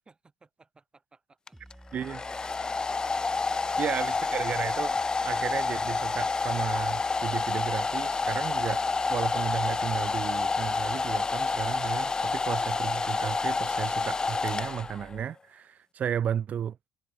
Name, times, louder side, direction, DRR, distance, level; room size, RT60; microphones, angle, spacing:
voice 1, 0.1-3.4, right 4 dB, 25° right, 5.2 m, -60 dB
Domestic sounds home sounds, 1.5-15.2, left 4 dB, 25° left, 0.3 m, -29 dB
sound 1, 1.5-15.2, right 1 dB, 5° right, 4.3 m, -52 dB
voice 2, 3.8-5.0 5.2-8.8 9.1-16.8, right 8 dB, 50° right, 0.4 m, -33 dB
supercardioid pair, 70°, 3 cm